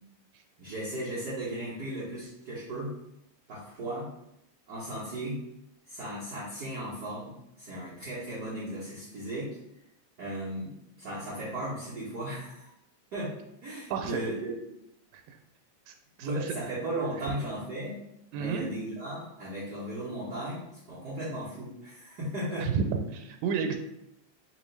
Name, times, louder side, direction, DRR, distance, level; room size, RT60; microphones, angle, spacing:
voice 1, 0.6-2.9 3.5-4.1 4.7-5.4 5.9-9.6 10.2-12.7 13.1-13.3 13.6-14.5 16.2-18.0 18.3-22.7, right 1 dB, 70° right, -8 dB, 0.9 m, -36 dB
voice 2, 13.9-14.2 15.1-15.4 15.9-16.5 18.3-18.7 22.6-23.8, right 6 dB, 85° right, 5 dB, 2.0 m, -31 dB
4.4 x 3.4 x 3.2 m, 0.81 s
omnidirectional pair, 3.4 m